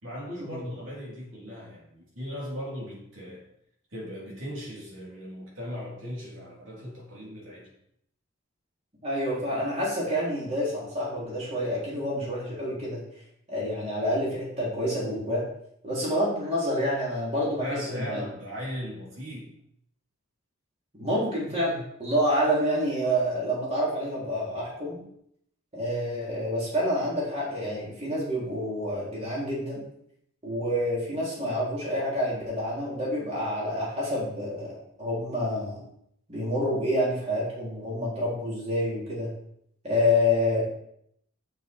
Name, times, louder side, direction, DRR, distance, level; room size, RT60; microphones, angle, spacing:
voice 1, 0.0-3.5 3.9-7.7 17.6-19.5, equal, 65° right, -4 dB, 3.6 m, -38 dB
voice 2, 9.0-13.0 13.5-15.4 15.8-18.2 21.0-25.0 25.7-29.8 30.4-35.8 36.3-39.3 39.8-40.6, equal, 30° right, -6 dB, 3.8 m, -28 dB
7.6 x 6.8 x 4.6 m, 0.72 s
head